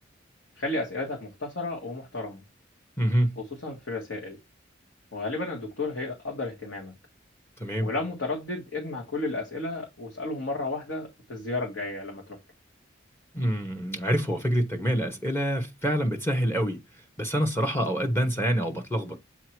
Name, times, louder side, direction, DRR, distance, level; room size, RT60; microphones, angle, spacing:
voice 1, 0.6-2.4 3.4-4.4 5.1-6.9 7.8-12.4, left 2 dB, 75° left, 1.8 m, -33 dB
voice 2, 3.0-3.4 7.6-7.9 13.3-16.8 17.2-19.2, equal, 10° left, 0.9 m, -26 dB
8.1 x 2.8 x 4.5 m
head